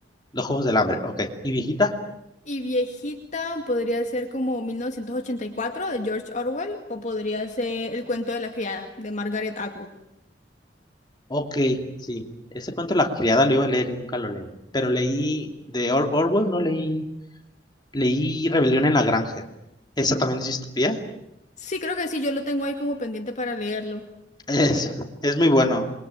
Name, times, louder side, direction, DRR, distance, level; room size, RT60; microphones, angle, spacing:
voice 1, 0.3-2.0 11.3-12.3 12.5-14.5 14.7-17.1 17.9-19.4 20.0-21.0 24.5-25.9, left 1 dB, 25° left, 3 dB, 2.8 m, -23 dB
voice 2, 2.5-9.9 20.1-20.2 21.6-24.1, left 1 dB, 40° left, 3 dB, 2.2 m, -28 dB
28.0 x 22.5 x 9.0 m, 0.86 s
head